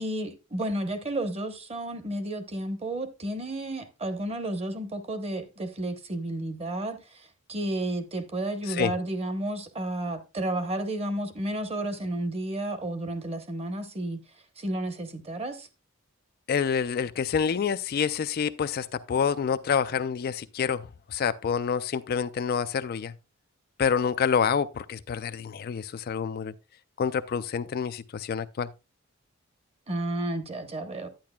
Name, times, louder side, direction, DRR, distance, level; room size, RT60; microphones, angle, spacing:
voice 1, 0.0-14.2 14.6-15.7 29.9-31.1, right 1 dB, 30° right, 1.0 m, -32 dB
voice 2, 16.5-23.1 23.8-26.5 27.0-28.7, left 6 dB, 45° left, 0.3 m, -27 dB
10.5 x 9.3 x 2.3 m
head